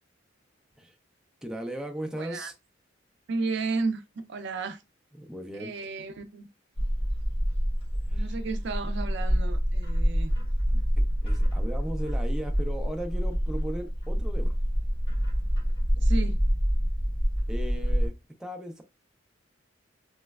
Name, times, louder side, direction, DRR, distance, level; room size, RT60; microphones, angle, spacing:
voice 1, 1.4-2.5 5.1-5.7 8.1-8.3 10.7-10.8 11.2-14.6 17.5-18.1 18.4-18.8, right 1 dB, 5° right, 0.5 m, -37 dB
voice 2, 2.2-2.5 3.3-4.0 4.3-4.8 5.5-6.5 8.1-10.3 16.0-16.4, right 3 dB, 65° right, 0.4 m, -33 dB
Bird, 6.8-18.1, equal, 30° left, 1.6 m, -26 dB
3.1 x 3.1 x 2.3 m
head